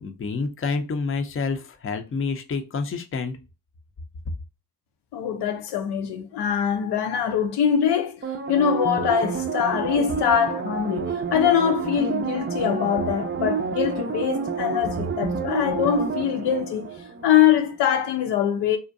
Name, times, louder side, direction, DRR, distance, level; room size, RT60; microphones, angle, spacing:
voice 1, 0.0-3.4, left 4 dB, 30° left, 0.5 m, -28 dB
voice 2, 5.1-16.9 17.2-18.8, left 8 dB, 75° left, 0.5 m, -23 dB
sound 1, 8.2-17.6 18.0-18.1, right 5 dB, 30° right, 0.4 m, -29 dB
2.5 x 2.1 x 2.5 m
supercardioid pair, 40°, 41 cm